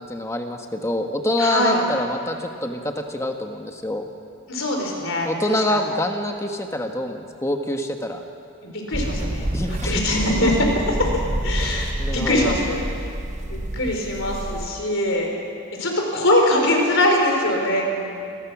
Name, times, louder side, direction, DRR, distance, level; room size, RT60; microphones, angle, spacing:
voice 1, 0.0-4.1 5.2-8.2 9.5-10.0 12.0-12.5, left 1 dB, 15° left, 4 dB, 1.4 m, -26 dB
voice 2, 1.4-1.8 4.5-5.8 8.6-9.5 9.8-13.1 13.5-15.4 15.8-18.2, left 1 dB, 60° left, 1 dB, 4.6 m, -22 dB
sound 1, 8.9-14.7, right 1 dB, 35° right, 1.1 m, -28 dB
28.0 x 20.5 x 6.2 m, 2.5 s
head